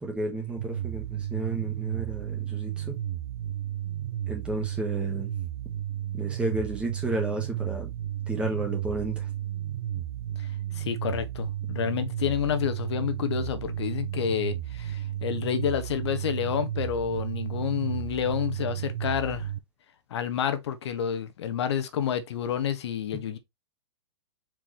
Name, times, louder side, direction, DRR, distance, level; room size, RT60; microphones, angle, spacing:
voice 1, 0.0-3.0 4.3-5.3 6.1-7.9 8.3-9.3, right 2 dB, 5° right, 1.5 m, -32 dB
sound 1, 0.6-19.6, right 11 dB, 60° right, 0.7 m, -33 dB
voice 2, 10.7-19.5 20.1-23.4, left 8 dB, 70° left, 0.9 m, -29 dB
4.6 x 3.7 x 3.1 m
hypercardioid pair, 150°, 14 cm